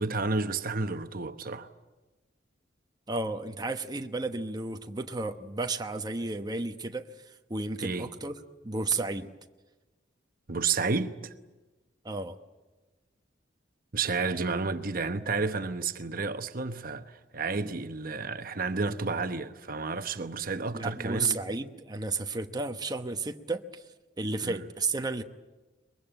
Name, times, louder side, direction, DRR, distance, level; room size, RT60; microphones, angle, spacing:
voice 1, 0.0-1.7 7.8-8.1 10.5-11.3 13.9-21.4 24.4-24.7, right 4 dB, 50° right, 1.0 m, -31 dB
voice 2, 3.1-8.3 8.6-9.3 12.0-12.4 20.7-23.8 24.2-25.2, right 3 dB, 20° right, 1.0 m, -32 dB
23.5 x 22.0 x 9.1 m
head